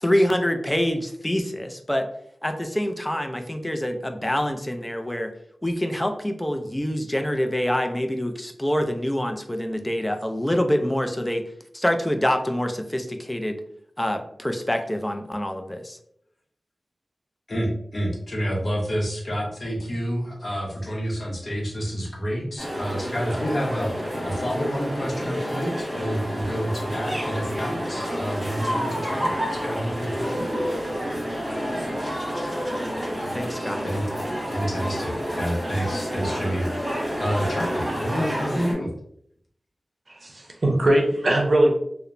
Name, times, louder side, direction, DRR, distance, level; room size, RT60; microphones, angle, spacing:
voice 1, 0.0-2.1 2.4-5.3 5.6-11.4 11.7-13.6 14.0-16.0 33.3-33.8, equal, 15° left, 6 dB, 0.4 m, -25 dB
voice 2, 17.5-30.4 33.8-34.1 34.4-38.9, equal, 50° left, -2 dB, 0.8 m, -29 dB
sound 1, 22.6-38.7, equal, 20° right, 1.4 m, -29 dB
voice 3, 40.1-41.7, right 1 dB, 55° right, 0 dB, 0.6 m, -20 dB
2.8 x 2.0 x 2.5 m, 0.68 s
wide cardioid pair, 55°, 0 cm